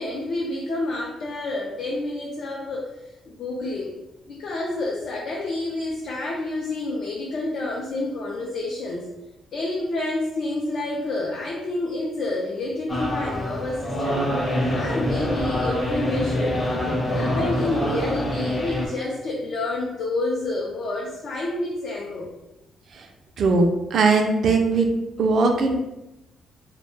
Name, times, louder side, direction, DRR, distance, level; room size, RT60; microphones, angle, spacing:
voice 1, 0.0-2.9 3.3-4.0 4.3-9.1 9.5-14.3 14.7-16.6 17.1-22.3, left 2 dB, 65° left, -3 dB, 0.4 m, -28 dB
sound 1, 12.9-18.9, left 1 dB, 25° left, 0.7 m, -25 dB
voice 2, 23.4-24.9 25.2-25.8, right 3 dB, 60° right, 3 dB, 0.3 m, -19 dB
2.2 x 2.0 x 3.1 m, 0.95 s
cardioid pair, 90°, 0 cm